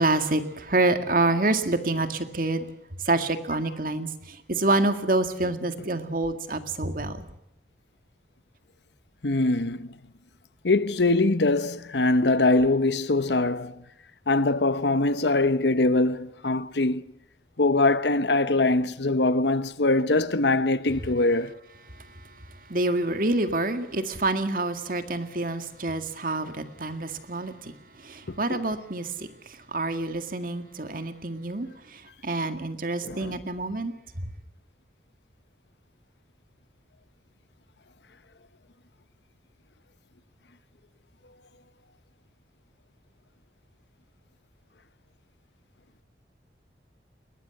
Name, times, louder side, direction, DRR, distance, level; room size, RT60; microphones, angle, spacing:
voice 1, 0.0-2.7 3.1-7.3 21.9-34.3, right 2 dB, 50° right, 2.0 m, -27 dB
voice 2, 9.2-9.9 10.6-13.8 14.3-17.0 17.6-21.6 28.5-28.6 33.0-33.4, left 2 dB, 80° left, 1.0 m, -23 dB
22.0 x 18.5 x 8.3 m
head